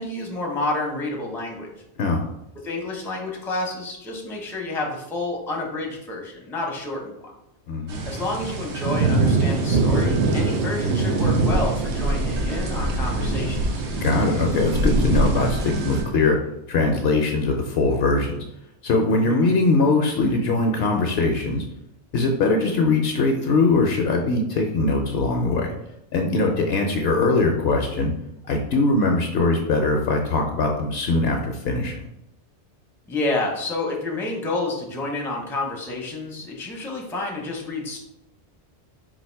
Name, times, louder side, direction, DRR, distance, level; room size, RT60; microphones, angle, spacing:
voice 1, 0.0-1.7 2.6-7.3 8.0-13.8 19.1-19.6 26.5-26.8 33.1-38.0, left 2 dB, 5° left, 0 dB, 0.5 m, -29 dB
voice 2, 7.7-8.1 14.0-16.4 16.7-18.4 18.8-21.6 22.1-25.7 26.1-28.1 28.5-32.0, left 3 dB, 70° left, 2 dB, 0.8 m, -21 dB
sound 1, 7.9-16.0, right 2 dB, 80° right, 1.0 m, -23 dB
4.0 x 2.5 x 4.4 m, 0.85 s
omnidirectional pair, 1.2 m